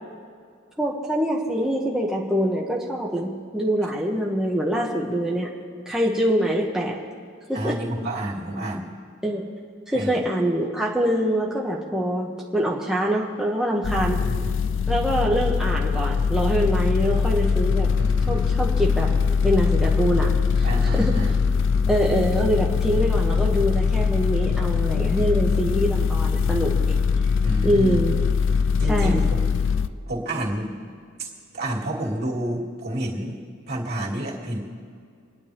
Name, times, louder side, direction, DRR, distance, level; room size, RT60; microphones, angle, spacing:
voice 1, 0.8-5.5 5.9-7.0 7.5-7.8 9.2-9.4 9.9-12.3 12.5-14.2 14.9-17.9 18.3-19.1 19.4-20.3 20.6-21.2 21.9-27.0 27.6-28.2 28.9-29.2, equal, 5° right, -4 dB, 1.2 m, -24 dB
voice 2, 7.5-8.9 9.9-10.2 14.2-14.4 17.9-18.5 20.6-21.3 27.4-28.0 28.8-29.2 30.1-30.8 31.2-31.3 31.5-34.6, right 1 dB, 55° right, -3 dB, 2.8 m, -29 dB
sound 1, 13.8-29.9, left 5 dB, 65° left, 0.5 m, -22 dB
27.5 x 10.5 x 3.5 m, 2.2 s
head